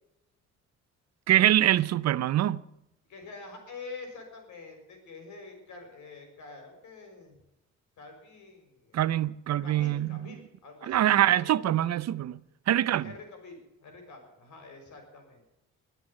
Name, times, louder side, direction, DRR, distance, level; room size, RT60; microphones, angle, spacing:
voice 1, 1.3-2.6 8.9-10.3 10.9-12.4 12.7-13.1, right 12 dB, 60° right, 0.7 m, -24 dB
voice 2, 3.1-7.4 8.0-9.1 9.6-11.6 12.8-15.4, left 3 dB, 75° left, 6.4 m, -47 dB
22.0 x 8.3 x 7.3 m
cardioid pair, 90°, 30 cm